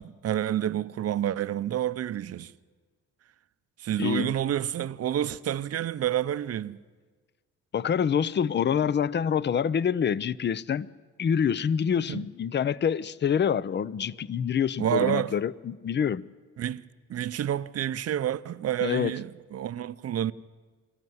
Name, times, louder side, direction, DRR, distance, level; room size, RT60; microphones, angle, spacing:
voice 1, 0.0-2.5 3.8-6.8 12.1-12.3 14.8-15.3 16.6-16.8 17.1-20.3, right 11 dB, 55° right, 0.8 m, -29 dB
voice 2, 4.0-4.3 7.7-10.9 11.2-16.2 18.8-19.1, left 7 dB, 35° left, 0.6 m, -26 dB
25.0 x 14.5 x 9.5 m
cardioid pair, 90°, 30 cm